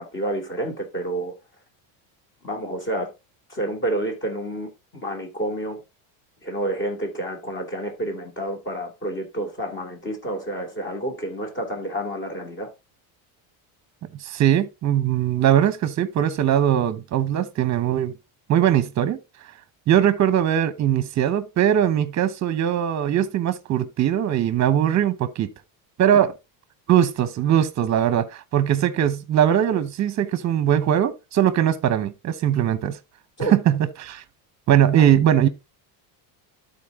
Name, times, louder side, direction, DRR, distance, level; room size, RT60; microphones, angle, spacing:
voice 1, 0.0-1.3 2.4-3.1 3.5-5.8 6.4-12.7 26.1-26.2 33.4-33.6 35.0-35.1, right 1 dB, 25° left, 2.7 m, -29 dB
voice 2, 14.2-18.1 18.5-19.2 19.9-25.5 26.0-26.3 26.9-33.0 33.5-34.2 34.7-35.5, right 10 dB, 35° right, 1.0 m, -20 dB
12.0 x 4.3 x 3.6 m
cardioid pair, 135°, 49 cm